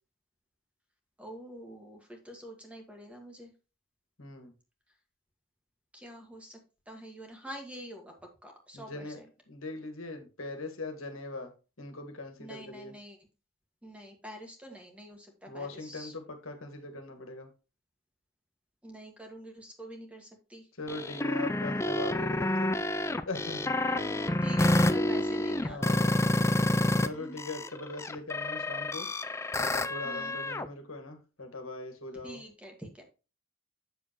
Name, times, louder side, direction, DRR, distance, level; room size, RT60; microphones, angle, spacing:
voice 1, 1.2-3.5 5.9-6.6 6.9-8.1 8.4-9.3 12.4-13.2 13.8-16.1 18.8-20.7 23.9-26.1 27.1-27.7 30.0-30.4 32.2-33.0, equal, 5° right, 2 dB, 1.6 m, -46 dB
voice 2, 4.2-4.5 8.7-9.2 9.5-11.5 11.8-12.9 15.5-17.5 20.8-22.8 23.3-23.7 25.7-26.2 27.0-29.1 29.6-32.4, left 2 dB, 90° left, 5 dB, 1.7 m, -40 dB
sound 1, 20.9-27.1 27.4-30.7, left 1 dB, 15° left, 0.4 m, -28 dB
7.7 x 6.7 x 3.0 m, 0.32 s
head